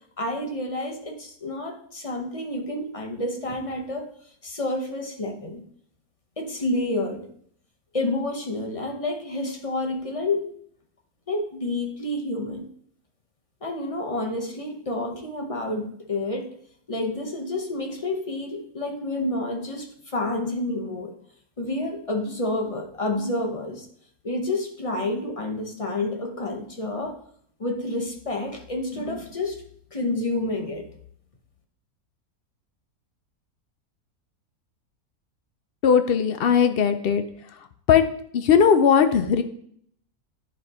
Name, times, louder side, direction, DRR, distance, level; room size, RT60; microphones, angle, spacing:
voice 1, 0.2-4.1 4.4-5.7 6.4-7.3 7.9-10.5 11.3-12.7 13.6-16.6 16.9-21.1 21.6-23.9 24.2-27.2 27.6-29.6 29.9-30.9, left 2 dB, 30° left, 2 dB, 0.7 m, -29 dB
voice 2, 35.8-37.2 37.9-38.0 38.3-39.4, left 7 dB, 80° left, 8 dB, 0.5 m, -18 dB
10.0 x 3.4 x 4.2 m, 0.63 s
omnidirectional pair, 1.6 m